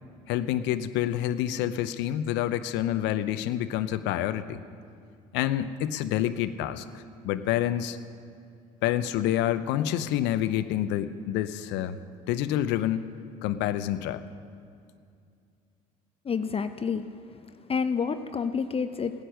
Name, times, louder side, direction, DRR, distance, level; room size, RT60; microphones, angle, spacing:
voice 1, 0.3-4.6 5.3-8.0 8.8-12.0 12.3-13.1 13.4-14.2, left 12 dB, 65° left, 12 dB, 0.7 m, -28 dB
voice 2, 16.3-17.0 17.7-19.2, left 6 dB, 30° left, 9 dB, 0.7 m, -28 dB
17.0 x 9.9 x 6.4 m, 2.4 s
hypercardioid pair, 65°, 20 cm